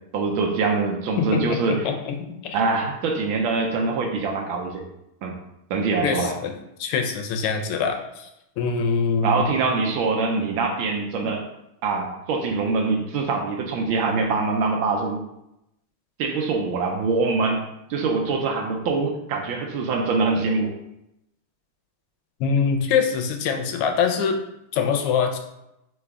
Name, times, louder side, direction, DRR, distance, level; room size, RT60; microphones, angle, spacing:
voice 1, 0.1-1.9 2.5-4.8 5.2-5.4 5.7-6.3 9.2-11.4 11.8-15.2 16.2-17.6 17.9-20.7, right 4 dB, 75° right, 2 dB, 1.3 m, -24 dB
voice 2, 1.2-2.6 6.0-6.5 6.8-8.3 8.6-9.5 22.4-24.4 24.7-25.4, left 6 dB, 90° left, 4 dB, 1.6 m, -24 dB
3.9 x 3.3 x 3.5 m, 0.85 s
omnidirectional pair, 2.4 m